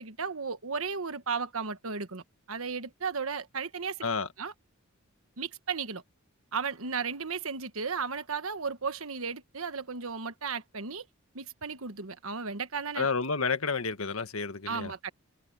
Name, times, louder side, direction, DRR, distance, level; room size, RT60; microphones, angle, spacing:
voice 1, 0.0-4.0 4.4-4.5 5.4-6.0 6.5-11.1 11.3-13.1 14.7-15.1, right 5 dB, 80° right, 1.4 m, -35 dB
voice 2, 13.0-14.9, left 4 dB, 80° left, 1.6 m, -30 dB
head